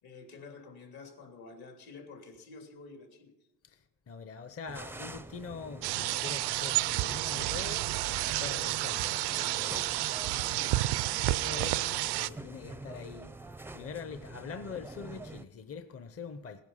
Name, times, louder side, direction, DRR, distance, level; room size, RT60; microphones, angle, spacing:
voice 1, 0.0-3.3 10.1-10.4 11.0-11.4, left 4 dB, 70° left, 3.1 m, -50 dB
voice 2, 3.6-7.9 8.1-9.9 11.2-13.5 13.7-16.6, left 6 dB, 40° left, 0.8 m, -44 dB
sound 1, 4.7-15.4, right 2 dB, 5° right, 0.4 m, -46 dB
sound 2, 5.8-12.3, right 17 dB, 85° right, 0.5 m, -30 dB
17.5 x 10.5 x 5.6 m
cardioid pair, 105°, 38 cm